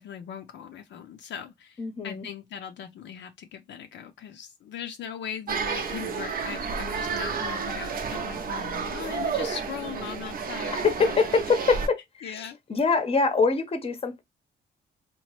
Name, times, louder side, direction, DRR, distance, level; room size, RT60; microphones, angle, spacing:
voice 1, 0.0-11.2 12.2-12.6, left 8 dB, 65° left, 0.5 m, -39 dB
voice 2, 1.8-2.3 10.7-14.2, left 4 dB, 30° left, 0.7 m, -25 dB
sound 1, 5.5-11.9, right 5 dB, 50° right, 0.6 m, -31 dB
2.9 x 2.1 x 2.9 m
cardioid pair, 90°, 20 cm